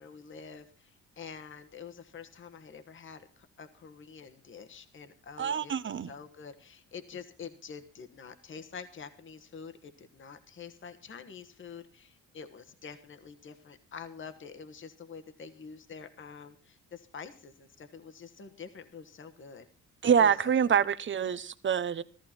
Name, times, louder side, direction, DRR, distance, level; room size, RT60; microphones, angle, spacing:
voice 1, 0.0-19.6 20.2-20.8, left 6 dB, 40° left, 1.3 m, -47 dB
voice 2, 5.4-6.1 20.0-22.0, right 8 dB, 40° right, 0.8 m, -26 dB
14.5 x 14.0 x 4.4 m
cardioid pair, 90°, 30 cm